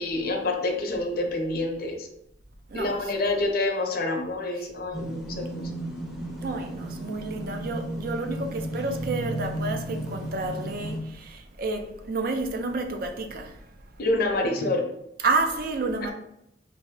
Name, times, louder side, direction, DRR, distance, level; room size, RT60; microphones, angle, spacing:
voice 1, 0.0-2.1 2.7-5.7 14.0-14.9, left 2 dB, 60° left, 0.7 m, -27 dB
sound 1, 4.9-11.0, right 1 dB, 5° right, 0.6 m, -34 dB
voice 2, 6.4-13.5 15.2-16.1, right 3 dB, 55° right, 0.4 m, -30 dB
3.1 x 2.7 x 3.6 m
head